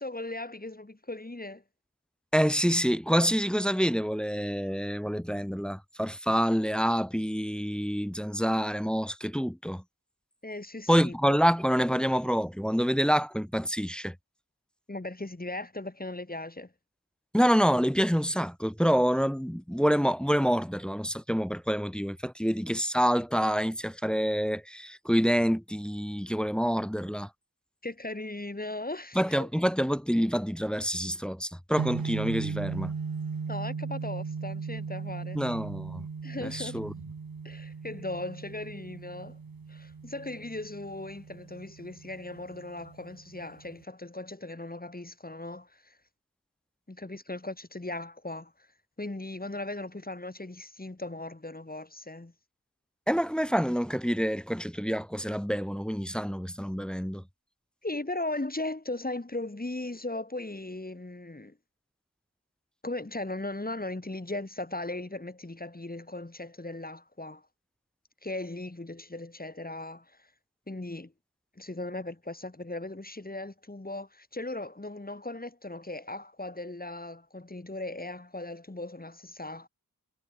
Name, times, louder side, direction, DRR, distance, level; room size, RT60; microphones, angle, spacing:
voice 1, 0.0-1.6 10.4-11.5 14.9-16.7 27.8-29.5 33.5-35.4 36.2-36.8 37.4-39.4 39.7-46.0 46.9-48.5 49.0-52.3 57.8-61.6 62.8-67.4 68.2-70.3 70.7-71.1 71.6-79.7, left 2 dB, 25° left, 6.6 m, -38 dB
voice 2, 2.3-9.8 10.9-14.1 17.3-27.3 29.1-32.9 35.3-36.1 36.4-36.9 53.1-57.2, equal, ahead, 1.3 m, -27 dB
sound 1, 31.8-43.8, right 5 dB, 75° right, 3.6 m, -38 dB
wide cardioid pair, 85°, 36 cm